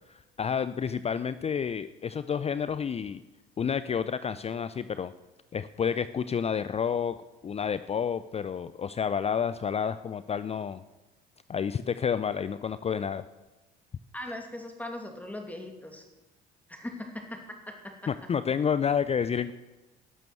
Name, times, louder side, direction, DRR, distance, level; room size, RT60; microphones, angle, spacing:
voice 1, 0.1-3.2 3.6-5.1 5.5-7.2 7.4-10.8 11.5-13.2 18.1-19.5, left 7 dB, 30° left, 14 dB, 0.5 m, -30 dB
voice 2, 14.1-16.0 16.7-18.1, left 1 dB, 5° left, 3 dB, 2.5 m, -40 dB
12.5 x 6.9 x 9.1 m, 1.1 s
supercardioid pair, 80°, 21 cm